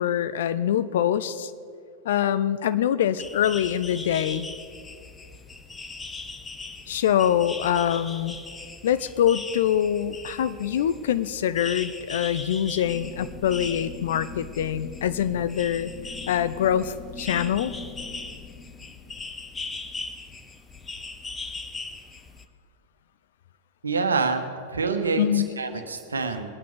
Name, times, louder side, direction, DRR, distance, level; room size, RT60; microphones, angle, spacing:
voice 1, 0.0-1.5 2.0-4.5 6.9-8.4 8.8-15.9 16.3-17.7 25.2-25.5, left 10 dB, 60° left, 14 dB, 0.6 m, -24 dB
sound 1, 3.2-22.4, left 3 dB, 15° left, 0.8 m, -39 dB
sound 2, 12.8-20.8, left 4 dB, 30° left, 2.4 m, -42 dB
voice 2, 23.8-25.3 25.6-26.5, right 4 dB, 75° right, 7 dB, 1.2 m, -26 dB
22.0 x 9.2 x 4.7 m, 2.3 s
figure-of-eight pair, 90°, 0 cm